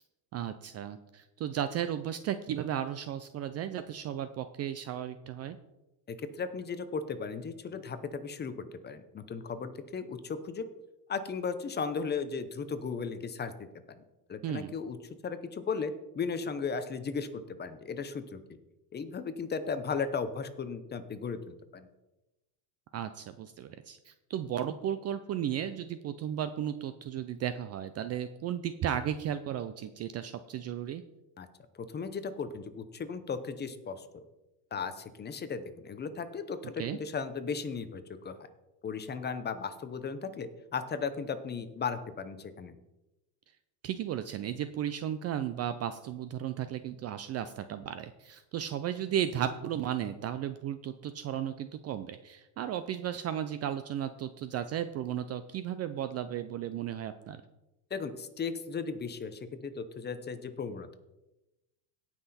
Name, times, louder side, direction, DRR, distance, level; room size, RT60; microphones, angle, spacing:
voice 1, 0.3-5.6 14.4-14.7 22.9-31.0 36.8-37.0 43.8-57.4, right 10 dB, 35° right, 11 dB, 0.4 m, -35 dB
voice 2, 6.1-8.5 8.8-10.7 11.1-13.5 13.9-14.0 14.3-15.0 15.2-18.4 18.9-21.9 31.4-31.5 31.8-34.2 34.7-38.4 38.8-42.7 57.9-61.0, left 5 dB, 20° left, 11 dB, 0.7 m, -36 dB
17.0 x 6.0 x 4.2 m, 1.0 s
supercardioid pair, 130°, 50 cm